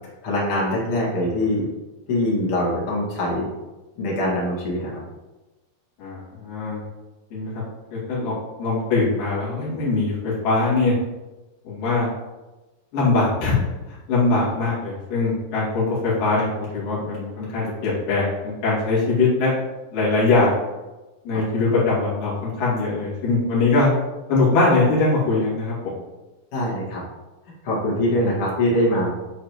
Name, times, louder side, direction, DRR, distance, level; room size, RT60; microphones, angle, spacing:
voice 1, 0.2-1.7 2.1-3.5 4.0-5.0 26.5-27.0 27.6-29.1, left 1 dB, 45° left, -5 dB, 2.5 m, -23 dB
voice 2, 6.0-6.8 7.3-7.5 7.9-8.3 8.6-10.9 11.7-12.1 12.9-13.6 14.1-19.5 19.9-20.5 21.3-23.9 24.3-25.7 28.1-28.3, left 3 dB, 65° left, -8 dB, 3.9 m, -21 dB
9.8 x 4.1 x 3.0 m, 1.1 s
omnidirectional pair, 4.2 m